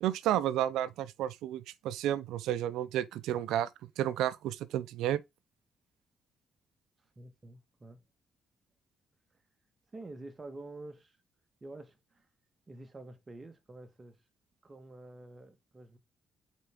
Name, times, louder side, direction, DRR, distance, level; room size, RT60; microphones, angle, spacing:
voice 1, 0.0-3.7 4.0-5.2, right 11 dB, 90° right, 0.6 m, -31 dB
voice 2, 7.2-8.0 9.9-11.2 11.6-12.3 12.7-14.2 14.6-16.0, right 2 dB, 25° right, 1.9 m, -48 dB
8.0 x 4.6 x 3.8 m
cardioid pair, 90°, 0 cm